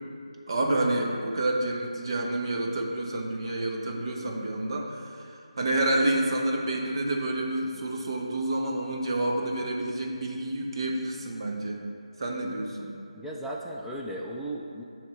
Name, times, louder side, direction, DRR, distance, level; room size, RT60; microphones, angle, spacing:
voice 1, 0.5-11.8 12.2-13.0, right 1 dB, 45° right, 0 dB, 1.0 m, -29 dB
voice 2, 13.1-14.8, right 1 dB, ahead, -5 dB, 0.4 m, -36 dB
9.9 x 3.5 x 5.3 m, 2.4 s
figure-of-eight pair, 160°, 4 cm